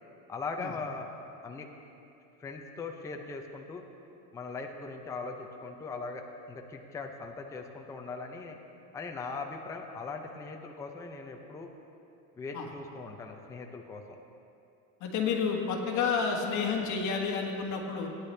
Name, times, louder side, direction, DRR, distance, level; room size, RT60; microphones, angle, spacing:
voice 1, 0.3-1.1 1.4-1.7 2.4-3.8 4.3-8.6 8.9-11.7 12.3-14.0, left 4 dB, 10° left, 2 dB, 0.5 m, -40 dB
voice 2, 15.0-18.1, left 5 dB, 40° left, 0 dB, 1.8 m, -30 dB
17.5 x 10.0 x 3.3 m, 2.7 s
cardioid pair, 145°, 42 cm